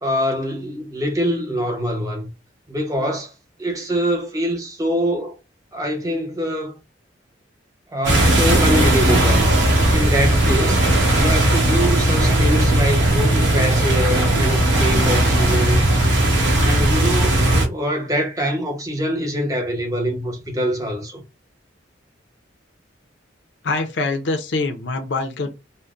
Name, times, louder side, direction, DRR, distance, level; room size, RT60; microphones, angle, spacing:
voice 1, 0.0-2.3 2.7-3.3 3.6-5.4 5.7-6.7 7.9-9.5 9.8-10.8 11.1-16.0 16.6-21.2, equal, 20° right, 0.7 m, -24 dB
sound 1, 8.0-17.7, right 1 dB, 75° right, 1.0 m, -17 dB
voice 2, 23.6-25.5, left 3 dB, 65° left, 0.5 m, -24 dB
3.8 x 2.1 x 2.3 m
head